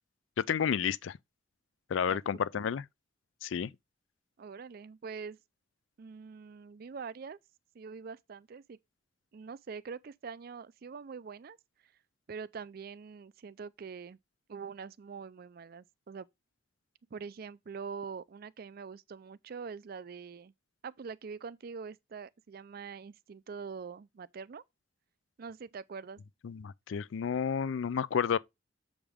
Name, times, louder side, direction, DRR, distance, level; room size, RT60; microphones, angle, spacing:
voice 1, 0.4-1.2 1.9-2.8 3.4-3.7 26.4-28.4, left 7 dB, 80° left, 0.4 m, -31 dB
voice 2, 4.4-5.4 6.0-7.4 7.7-8.8 9.3-11.6 12.3-14.2 14.5-16.3 17.1-20.5 20.8-24.6 25.4-26.2, right 5 dB, 50° right, 0.4 m, -44 dB
7.2 x 5.0 x 3.5 m
head